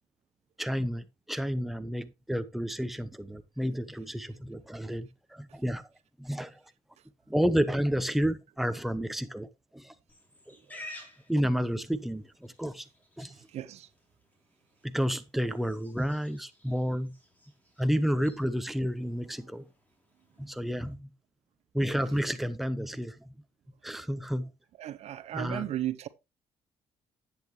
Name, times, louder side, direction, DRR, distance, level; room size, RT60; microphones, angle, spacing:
voice 1, 0.6-5.8 6.2-6.6 7.3-9.5 9.7-9.9 10.5-10.6 11.3-12.8 13.2-13.3 14.8-17.1 17.8-19.6 20.4-21.1 21.7-23.3 23.8-24.5 25.3-25.7, equal, ahead, 0.9 m, -30 dB
Livestock farm animals working animals, 10.1-20.9, left 1 dB, 15° left, 3.6 m, -53 dB
voice 2, 13.5-13.9 24.8-26.1, right 12 dB, 70° right, 0.8 m, -35 dB
10.0 x 8.3 x 3.2 m
cardioid pair, 90°, 11 cm